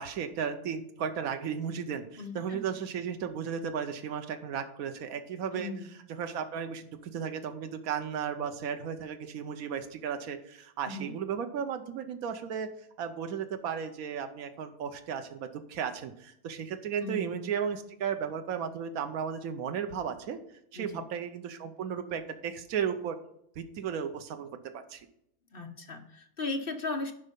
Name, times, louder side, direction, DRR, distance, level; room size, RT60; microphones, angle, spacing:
voice 1, 0.0-5.7 6.1-12.7 13.0-20.4 20.7-23.2 23.6-25.1, right 7 dB, 75° right, 8 dB, 1.2 m, -35 dB
voice 2, 2.2-2.6 5.5-5.9 10.9-11.1 17.0-17.4 20.8-21.0 25.5-27.1, left 2 dB, 45° left, 5 dB, 1.0 m, -37 dB
11.0 x 5.6 x 5.3 m, 0.72 s
omnidirectional pair, 1.5 m